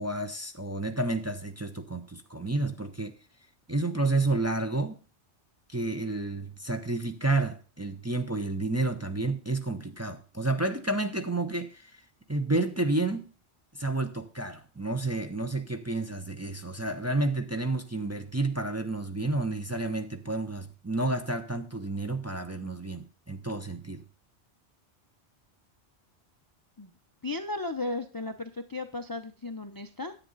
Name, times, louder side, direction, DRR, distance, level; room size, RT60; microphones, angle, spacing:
voice 1, 0.0-3.1 3.7-5.0 5.7-12.0 12.3-13.2 13.7-24.0, right 2 dB, 15° right, 0.6 m, -30 dB
voice 2, 27.2-30.1, left 2 dB, 25° left, 0.5 m, -35 dB
10.0 x 8.5 x 3.9 m
omnidirectional pair, 1.2 m